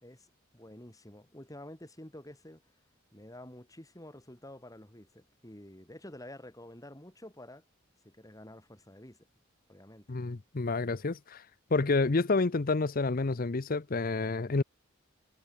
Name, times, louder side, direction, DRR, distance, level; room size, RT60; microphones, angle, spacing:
voice 1, 0.0-2.7 3.1-7.6 8.0-9.2 9.7-10.1, left 1 dB, 15° left, 3.5 m, -49 dB
voice 2, 10.1-11.4 11.7-14.6, left 3 dB, 45° left, 0.7 m, -29 dB
head